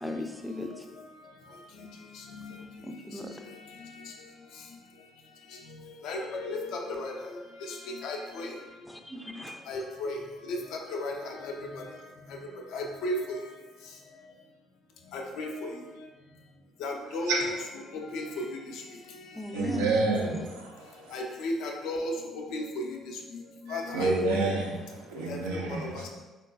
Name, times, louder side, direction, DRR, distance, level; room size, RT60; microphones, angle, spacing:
voice 1, 0.0-0.9 2.8-3.5 8.9-9.6 19.3-20.4 24.0-24.6, equal, ahead, 3 dB, 0.4 m, -37 dB
voice 2, 2.1-2.6 3.8-4.1 6.0-8.5 9.7-11.9 12.3-12.4 12.7-13.4 15.1-15.8 16.8-17.6 17.9-18.8 19.7-19.9 21.1-24.5 25.3-26.1, left 1 dB, 70° left, 1 dB, 0.4 m, -35 dB
voice 3, 19.5-21.1 23.7-26.0, right 3 dB, 80° right, -1 dB, 0.5 m, -29 dB
3.8 x 2.3 x 2.3 m, 1.1 s
hypercardioid pair, 50°, 0 cm